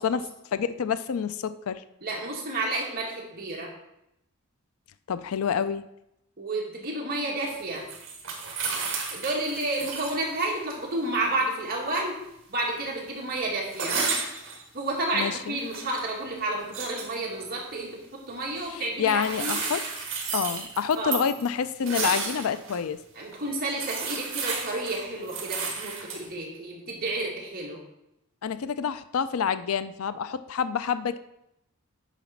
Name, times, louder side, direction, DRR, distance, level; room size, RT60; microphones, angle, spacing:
voice 1, 0.0-1.8 5.1-5.8 15.1-15.6 18.7-19.8 20.3-23.0 28.4-31.2, left 7 dB, 75° left, 13 dB, 0.4 m, -28 dB
voice 2, 2.0-3.7 6.4-7.9 9.1-12.2 12.5-14.0 14.7-19.7 21.0-21.2 23.1-27.8, right 2 dB, 45° right, -3 dB, 2.3 m, -31 dB
sound 1, 7.5-10.2 10.5-10.6 13.7-14.6 15.5-16.1 16.6-17.1 19.0-22.8 23.3-23.4 23.7-26.2, right 5 dB, 60° right, 2.0 m, -32 dB
9.1 x 4.1 x 5.8 m, 0.83 s
head